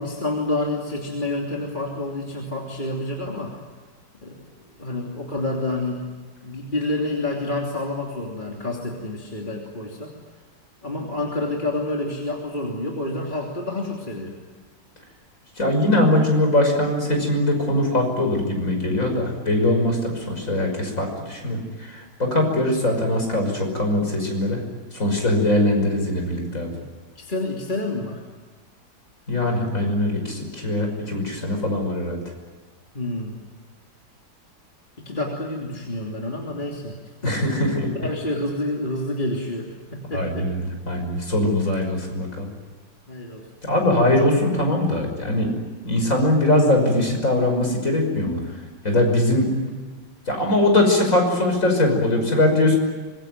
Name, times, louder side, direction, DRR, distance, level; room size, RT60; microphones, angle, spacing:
voice 1, 0.0-3.6 4.2-4.3 4.8-6.1 6.4-10.1 10.8-14.3 26.5-26.8 27.1-28.2 32.9-33.4 35.0-37.0 37.2-37.4 38.0-40.5 43.1-43.5, left 2 dB, 25° left, -1 dB, 3.1 m, -28 dB
voice 2, 15.6-24.6 24.9-26.7 29.3-32.2 37.2-37.9 40.1-42.5 43.6-45.5 45.8-48.4 48.8-49.5 50.3-52.8, left 1 dB, 40° left, 3 dB, 6.3 m, -21 dB
25.5 x 22.0 x 9.4 m, 1.4 s
omnidirectional pair, 2.1 m